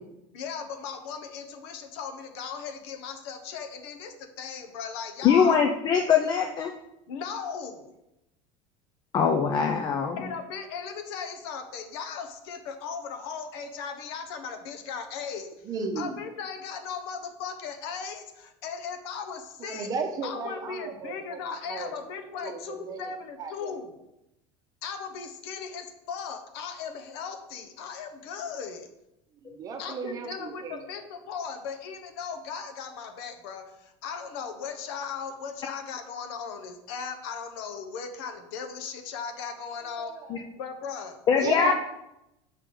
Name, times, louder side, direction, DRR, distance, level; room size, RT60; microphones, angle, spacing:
voice 1, 0.3-5.6 7.1-7.9 10.2-15.5 16.0-19.9 20.2-23.9 24.8-28.9 29.8-40.1 40.6-41.7, left 6 dB, 80° left, 6 dB, 1.0 m, -37 dB
voice 2, 5.2-6.7 9.1-10.2 29.5-29.6 40.3-40.4 41.3-41.7, left 7 dB, 30° left, 4 dB, 0.5 m, -22 dB
voice 3, 15.6-16.2 19.6-21.9 22.3-23.1 23.4-23.8 29.4-30.9 39.9-40.4 41.3-41.7, right 4 dB, 30° right, 6 dB, 0.8 m, -35 dB
6.7 x 5.6 x 3.8 m, 0.88 s
cardioid pair, 160°, 13 cm